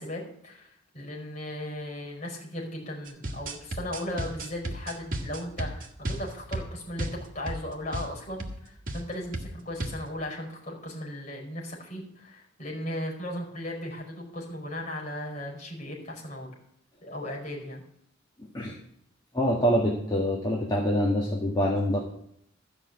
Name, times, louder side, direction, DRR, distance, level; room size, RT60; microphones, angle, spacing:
voice 1, 0.0-16.5 17.0-17.8, left 1 dB, 35° left, -1 dB, 4.9 m, -37 dB
sound 1, 3.1-7.6 7.9-8.1 8.4-8.6 8.9-9.1 9.3-10.0, right 1 dB, 45° right, 1.5 m, -34 dB
voice 2, 18.4-18.7 19.3-22.0, equal, 20° left, -3 dB, 1.7 m, -25 dB
13.5 x 5.8 x 8.2 m, 0.72 s
head